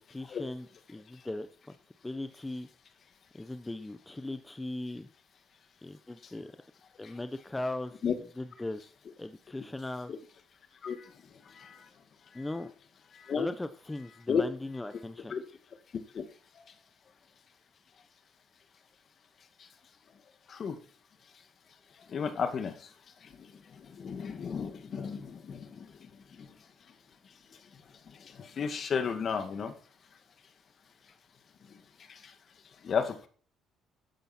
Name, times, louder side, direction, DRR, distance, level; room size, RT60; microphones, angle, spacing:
voice 1, 0.1-1.7 2.0-2.7 3.3-5.1 5.8-6.5 7.0-7.9 8.4-10.1 12.3-12.7 13.4-15.3, left 2 dB, 15° left, 10 dB, 1.1 m, -39 dB
voice 2, 22.1-22.7 24.0-25.6 28.6-29.7 32.8-33.3, left 6 dB, 50° left, 9 dB, 2.2 m, -31 dB
13.0 x 10.5 x 4.5 m, 0.42 s
supercardioid pair, 75°, 0 cm